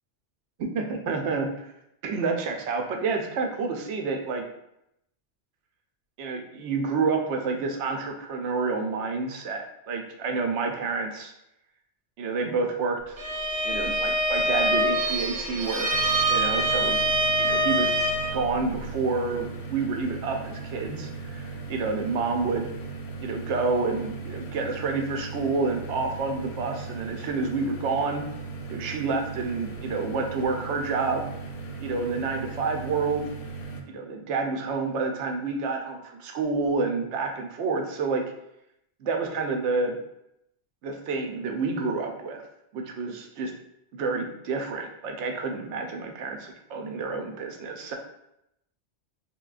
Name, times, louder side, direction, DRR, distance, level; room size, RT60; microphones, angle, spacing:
voice 1, 0.6-1.5 2.0-4.4 6.2-11.3 12.2-13.2 13.6-16.0 16.3-17.0 17.4-17.9 18.3-22.7 23.2-28.2 28.7-31.3 31.8-33.3 33.9-38.2 39.0-40.0 40.8-42.4 42.7-43.5 43.9-47.9, right 4 dB, 85° right, 3 dB, 0.9 m, -29 dB
Bowed string instrument, 13.2-18.4, right 1 dB, 50° right, 0.6 m, -25 dB
sound 1, 15.9-33.8, right 4 dB, 65° left, 0.7 m, -38 dB
3.7 x 3.0 x 2.4 m, 0.80 s
omnidirectional pair, 1.2 m